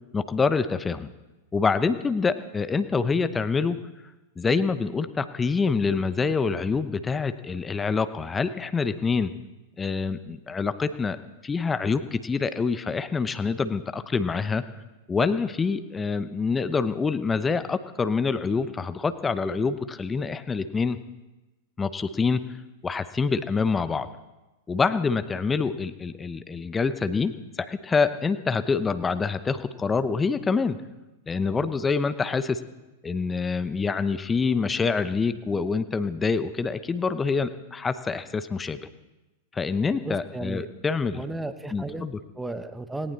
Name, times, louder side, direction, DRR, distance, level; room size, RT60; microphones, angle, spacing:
voice 1, 0.1-1.1 1.5-3.8 4.4-9.3 9.8-11.2 11.4-14.6 15.1-21.0 21.8-22.4 22.8-24.1 24.7-30.8 31.3-32.6 33.0-38.8 39.5-41.2 41.7-42.2, left 4 dB, 15° left, 12 dB, 0.9 m, -26 dB
voice 2, 40.0-40.7 41.2-42.1 42.4-43.1, right 2 dB, 5° right, 10 dB, 1.1 m, -34 dB
18.5 x 18.0 x 4.2 m, 1.1 s
hypercardioid pair, 100°, 0 cm